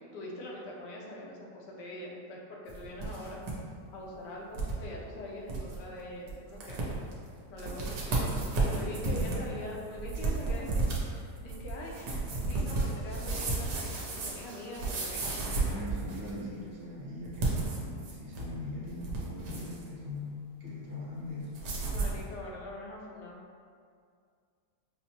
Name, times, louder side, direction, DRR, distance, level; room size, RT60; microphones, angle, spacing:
voice 1, 0.0-3.4 3.9-6.8 7.5-8.3 8.6-15.6 21.8-23.4, left 1 dB, 75° left, -3 dB, 1.3 m, -43 dB
sound 1, 2.7-3.5 3.9-4.0 4.5-4.8 5.2-5.3 5.5-5.8 6.3-6.4 6.6-7.1 7.6-16.4 17.3-18.5 18.9-19.8 21.5-22.2, right 3 dB, 75° right, 1.3 m, -32 dB
voice 2, 8.6-9.6 15.4-21.5, left 1 dB, 55° right, -7 dB, 1.1 m, -41 dB
5.9 x 2.1 x 2.8 m, 2.2 s
omnidirectional pair, 1.9 m